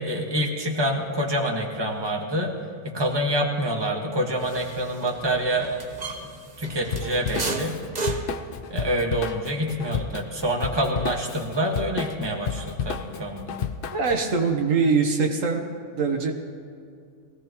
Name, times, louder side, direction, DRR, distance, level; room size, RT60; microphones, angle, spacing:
voice 1, 0.0-2.5 2.8-5.8 6.6-7.8 8.7-13.6, right 1 dB, 20° right, 0 dB, 1.6 m, -26 dB
sound 1, 4.4-12.5 12.8-14.0, right 3 dB, 35° right, 1.1 m, -36 dB
Drum kit / Drum, 6.9-14.2, left 7 dB, 55° left, 0.6 m, -32 dB
voice 2, 13.9-15.7 15.9-16.3, right 4 dB, 75° right, 3 dB, 1.5 m, -22 dB
22.0 x 16.5 x 3.0 m, 2.4 s
omnidirectional pair, 1.4 m